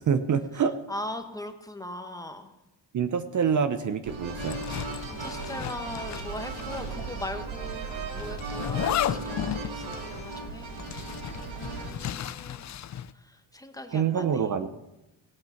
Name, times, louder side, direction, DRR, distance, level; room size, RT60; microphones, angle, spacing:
voice 1, 0.0-0.8 2.9-4.6 13.9-14.7, right 7 dB, 40° right, 10 dB, 0.8 m, -26 dB
voice 2, 0.9-2.5 5.1-7.9 8.1-10.7 11.5-12.6 13.1-14.5, left 1 dB, 10° left, 6 dB, 1.2 m, -40 dB
sound 1, 4.0-11.9, right 3 dB, 80° right, 3.0 m, -36 dB
Zipper (clothing), 4.4-6.9 7.2-7.3 8.2-13.1, left 11 dB, 40° left, 0.5 m, -34 dB
17.5 x 8.7 x 5.8 m, 0.94 s
cardioid pair, 140°, 45 cm